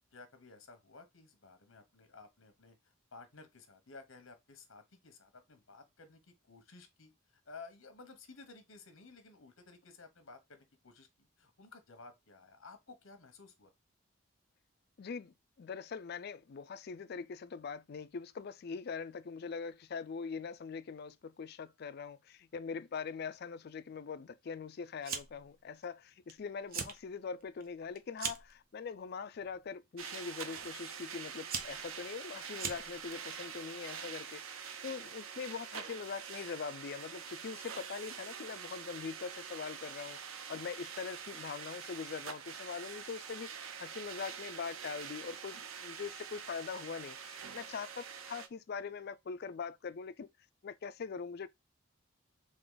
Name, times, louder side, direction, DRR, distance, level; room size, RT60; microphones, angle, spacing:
voice 1, 0.1-13.7, left 4 dB, 70° left, 1.1 m, -55 dB
voice 2, 15.0-40.2 40.5-50.3 50.6-51.5, left 5 dB, 50° left, 0.4 m, -42 dB
Fire, 25.0-25.5 25.8-26.3 26.6-27.0 27.4-28.6 29.3-29.7 30.6-30.7 31.2-33.2, right 6 dB, 45° right, 0.6 m, -40 dB
sound 1, 30.0-48.5, right 7 dB, 85° right, 0.7 m, -45 dB
3.8 x 3.4 x 3.8 m
head